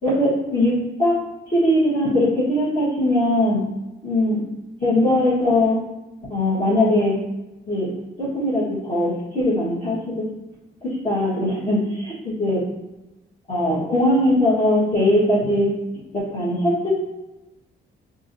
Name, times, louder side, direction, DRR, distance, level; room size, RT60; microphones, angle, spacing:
voice 1, 0.0-1.2 1.5-3.6 4.0-4.4 4.8-5.8 6.3-7.2 7.7-10.2 10.8-12.6 13.5-15.7 16.1-16.9, left 1 dB, 40° left, -10 dB, 1.3 m, -20 dB
4.5 x 2.7 x 2.7 m, 0.99 s
cardioid pair, 90°, 20 cm